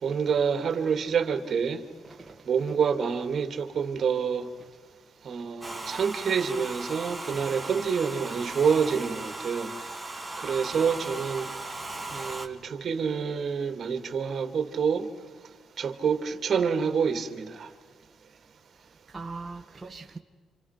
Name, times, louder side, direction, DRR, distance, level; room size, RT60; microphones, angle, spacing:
voice 1, 0.0-1.8 2.5-4.5 5.2-9.7 10.4-11.5 12.1-15.1 15.8-17.7, right 6 dB, 50° right, 2.7 m, -27 dB
voice 2, 2.0-2.4 19.1-20.2, right 3 dB, 20° right, 1.8 m, -40 dB
Domestic sounds home sounds, 5.6-12.5, right 2 dB, 5° right, 2.7 m, -37 dB
29.0 x 28.0 x 6.0 m
cardioid pair, 90°, 0 cm